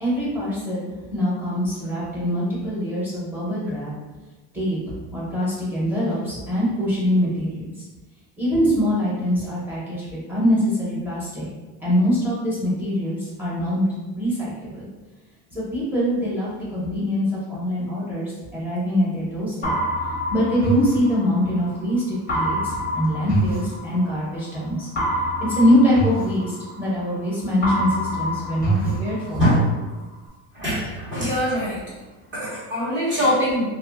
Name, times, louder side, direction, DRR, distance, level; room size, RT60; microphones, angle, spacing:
voice 1, 0.0-3.9 4.5-4.8 5.1-7.6 8.4-11.5 11.8-14.9 15.5-19.8 20.3-24.9 25.5-29.4, equal, 5° right, -8 dB, 0.9 m, -23 dB
sound 1, 19.6-21.7 22.3-24.4 25.0-27.2 27.6-29.7, right 1 dB, 20° left, 0.6 m, -26 dB
voice 2, 29.3-29.7 30.5-31.8 32.3-33.6, equal, 30° right, -9 dB, 1.3 m, -22 dB
2.6 x 2.6 x 2.2 m, 1.2 s
cardioid pair, 150°, 40 cm